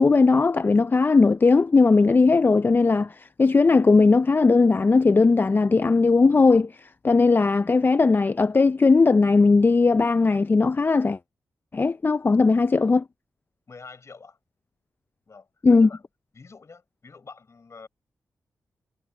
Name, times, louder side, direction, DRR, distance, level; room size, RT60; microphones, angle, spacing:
voice 1, 0.0-11.2 11.7-13.0 15.6-15.9, left 4 dB, 35° left, 0.4 m, -18 dB
voice 2, 13.7-14.4 15.3-16.0 16.3-17.9, left 4 dB, 50° left, 4.3 m, -46 dB
cardioid pair, 55°, 6 cm